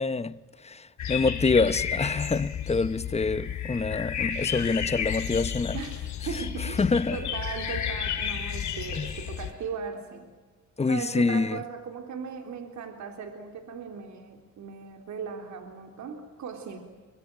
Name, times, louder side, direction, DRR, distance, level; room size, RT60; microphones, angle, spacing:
voice 1, 0.0-5.8 6.6-7.2 8.9-9.1 10.8-11.6, left 4 dB, 20° left, 0.9 m, -26 dB
sound 1, 1.0-9.5, left 8 dB, 70° left, 6.5 m, -32 dB
voice 2, 5.7-6.8 7.1-10.3 10.8-16.8, right 6 dB, 70° right, 3.6 m, -38 dB
24.5 x 24.5 x 8.9 m
cardioid pair, 90°, 30 cm